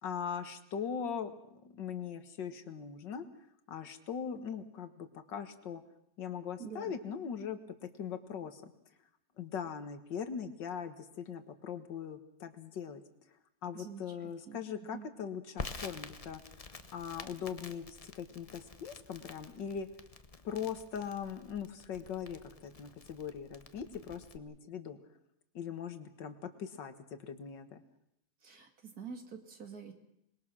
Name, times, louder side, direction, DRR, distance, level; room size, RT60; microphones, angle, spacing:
voice 1, 0.0-3.3 3.7-5.8 6.2-7.6 8.0-8.7 9.4-13.0 13.6-16.4 16.9-19.9 20.4-25.0 25.5-27.8, left 7 dB, 80° left, 9 dB, 2.1 m, -40 dB
voice 2, 6.6-6.9 13.7-14.6 14.9-15.1 28.4-29.9, right 6 dB, 55° right, 5 dB, 2.8 m, -47 dB
Crackle, 15.6-24.4, left 3 dB, 25° left, 0.8 m, -49 dB
26.5 x 21.0 x 6.2 m, 0.78 s
omnidirectional pair, 1.9 m